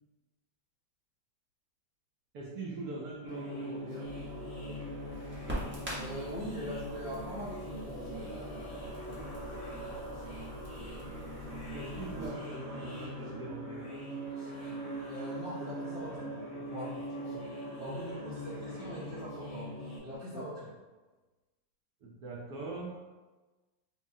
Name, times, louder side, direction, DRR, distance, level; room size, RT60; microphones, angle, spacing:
voice 1, 2.3-4.1 10.6-11.1 11.7-13.9 20.3-20.5 22.0-22.9, right 2 dB, 65° right, -4 dB, 1.0 m, -42 dB
sound 1, 3.3-20.0, right 1 dB, 85° left, 1.8 m, -41 dB
Crackle, 4.0-12.3, equal, 15° right, 0.4 m, -45 dB
voice 2, 5.9-8.3 15.1-16.3 16.5-16.9 17.3-19.7 20.0-20.7, equal, 50° left, -10 dB, 0.6 m, -42 dB
5.9 x 2.1 x 2.7 m, 1.2 s
omnidirectional pair, 2.1 m